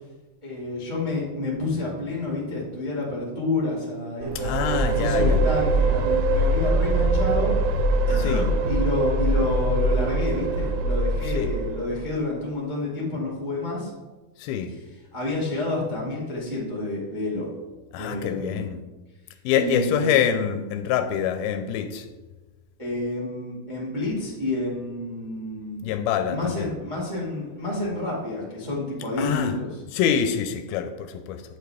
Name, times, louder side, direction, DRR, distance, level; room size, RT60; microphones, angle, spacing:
voice 1, 0.4-7.5 8.1-13.9 15.1-17.4 18.0-18.7 19.6-20.1 22.8-25.8 26.3-29.8, left 2 dB, 25° right, 0.6 m, -29 dB
sound 1, 4.2-12.1, right 2 dB, 80° right, 2.1 m, -23 dB
voice 2, 4.4-5.4 8.2-8.5 11.3-11.5 14.4-14.8 17.9-18.8 19.4-22.1 25.8-26.7 29.2-29.5 29.9-31.4, left 8 dB, 85° left, 2.4 m, -25 dB
9.0 x 6.6 x 3.4 m
omnidirectional pair, 4.4 m